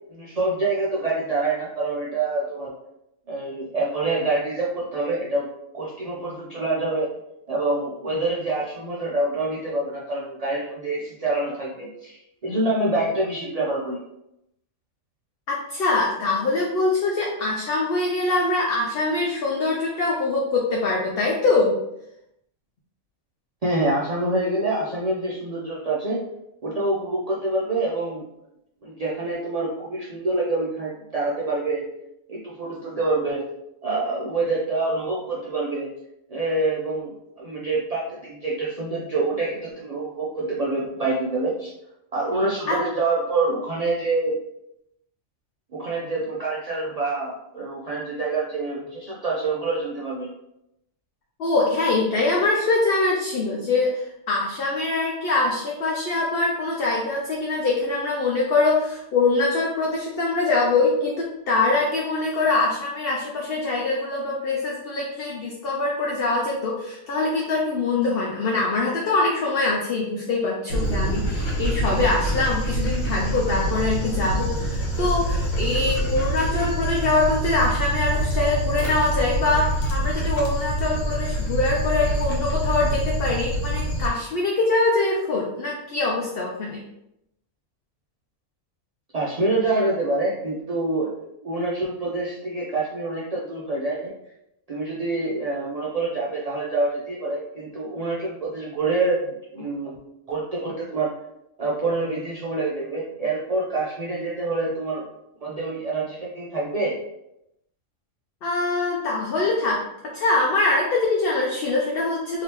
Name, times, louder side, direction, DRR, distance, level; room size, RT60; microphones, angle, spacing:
voice 1, 0.1-2.7 3.3-5.5 5.7-7.1 7.5-14.0 23.6-26.2 26.6-28.2 28.8-31.8 32.3-33.5 33.8-35.9 36.3-41.7 42.1-44.4 45.7-50.3 89.1-91.1 91.4-94.1 94.7-99.2 99.5-100.0 100.3-101.1 101.6-105.1 105.4-106.9, right 2 dB, 65° right, -5 dB, 0.3 m, -26 dB
voice 2, 15.5-21.8 42.7-42.8 51.4-86.8 108.4-109.8 110.1-112.4, left 3 dB, 60° left, -2 dB, 0.7 m, -23 dB
Dog, 70.7-84.1, right 1 dB, 85° left, 1.4 m, -25 dB
3.5 x 2.8 x 2.9 m, 0.83 s
omnidirectional pair, 1.4 m